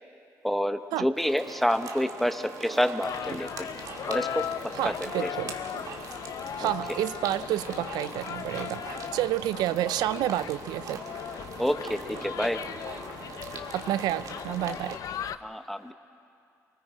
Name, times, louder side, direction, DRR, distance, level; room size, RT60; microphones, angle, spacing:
voice 1, 0.4-3.7 4.1-4.5 4.8-4.9 5.2-5.3 6.6-6.7 11.6-12.6 15.4-15.9, equal, 5° left, 9 dB, 1.0 m, -28 dB
sound 1, 1.2-15.0, right 5 dB, 65° right, 2.0 m, -42 dB
sound 2, 3.0-15.4, left 9 dB, 60° left, 0.6 m, -37 dB
voice 2, 4.8-5.5 6.6-11.0 13.7-15.0, right 13 dB, 85° right, 15 dB, 0.4 m, -29 dB
28.5 x 20.5 x 4.9 m, 2.5 s
cardioid pair, 95°, 7 cm